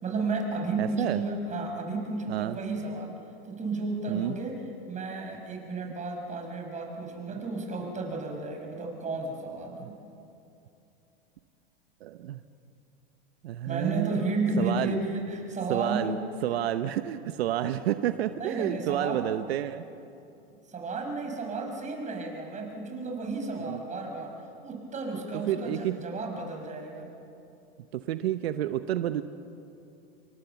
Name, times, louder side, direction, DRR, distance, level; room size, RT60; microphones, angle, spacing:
voice 1, 0.0-3.1 3.5-4.6 4.9-10.0 13.6-16.2 18.4-19.2 20.7-24.3 24.6-27.1, right 3 dB, 25° right, 2 dB, 5.9 m, -32 dB
voice 2, 0.8-1.2 2.3-2.6 4.1-4.4 7.3-7.4 9.8-9.9 12.0-12.4 13.4-14.2 14.6-15.0 15.7-16.2 16.4-19.9 23.7-23.8 25.3-26.0 27.9-29.2, right 12 dB, 80° right, 11 dB, 1.0 m, -30 dB
28.0 x 23.5 x 7.2 m, 2.7 s
hypercardioid pair, 115°, 31 cm